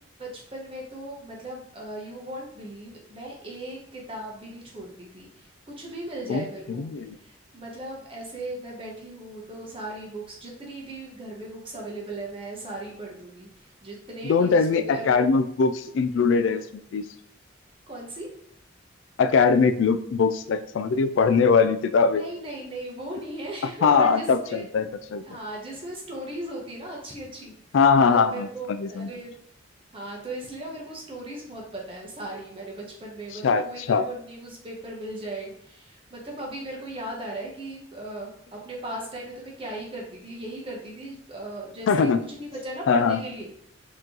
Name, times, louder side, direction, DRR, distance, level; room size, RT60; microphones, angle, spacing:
voice 1, 0.2-6.9 7.2-15.1 17.9-18.3 22.2-24.9 25.3-27.5 28.0-29.3 29.9-43.5, right 1 dB, 25° right, -2 dB, 1.2 m, -37 dB
voice 2, 6.3-7.2 14.2-16.6 16.9-17.0 19.2-22.2 23.8-25.2 27.7-29.1 33.4-34.0 41.9-42.2 42.9-43.2, left 5 dB, 70° left, 10 dB, 0.3 m, -21 dB
4.5 x 3.1 x 3.9 m, 0.67 s
head